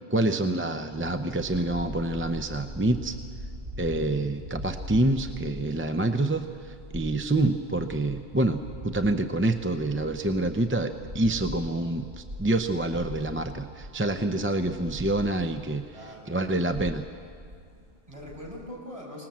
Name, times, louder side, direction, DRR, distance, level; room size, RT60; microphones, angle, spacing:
voice 1, 0.0-3.2 3.8-15.8 16.3-17.0, right 2 dB, 15° right, 7 dB, 0.5 m, -27 dB
sound 1, 0.9-15.9 16.3-18.7, equal, 75° right, 7.7 m, -42 dB
voice 2, 15.9-16.5 17.7-19.3, equal, 35° right, -3 dB, 6.4 m, -43 dB
25.5 x 19.5 x 7.5 m, 2.3 s
omnidirectional pair, 1.1 m